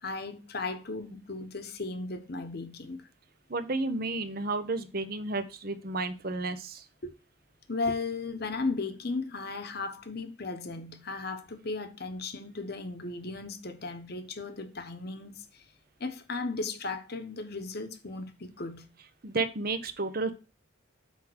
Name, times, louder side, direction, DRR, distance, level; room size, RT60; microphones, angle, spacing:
voice 1, 0.0-3.0 7.0-7.1 7.7-15.6 16.0-18.8, left 3 dB, 50° left, 1.1 m, -36 dB
voice 2, 3.5-6.8 19.2-20.3, right 3 dB, 45° right, 0.9 m, -32 dB
8.3 x 3.6 x 6.3 m
head